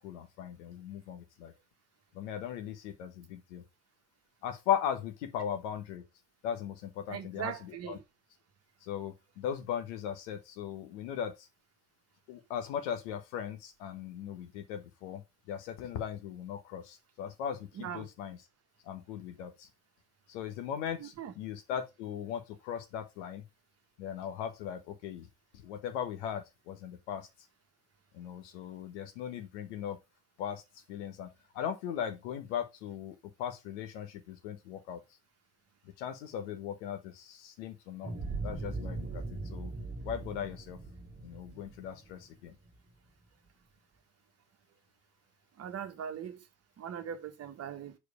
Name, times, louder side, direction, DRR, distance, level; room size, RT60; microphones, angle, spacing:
voice 1, 0.0-1.5 2.1-3.6 4.4-6.0 6.4-8.0 8.8-11.3 12.3-15.2 15.5-18.4 18.9-19.7 20.3-23.4 24.0-25.3 25.6-27.3 28.1-30.0 30.4-30.6 30.9-31.3 31.5-35.0 36.0-38.1 38.4-39.2 39.5-39.7 40.0-40.8 41.2-42.5, left 9 dB, 80° left, 1.4 m, -38 dB
voice 2, 7.1-8.0 17.8-18.1 21.0-21.3 45.6-46.4 46.8-48.0, right 8 dB, 45° right, 1.3 m, -40 dB
sound 1, 38.0-42.8, right 3 dB, 25° right, 1.4 m, -39 dB
4.8 x 4.6 x 5.1 m
hypercardioid pair, 80°, 35 cm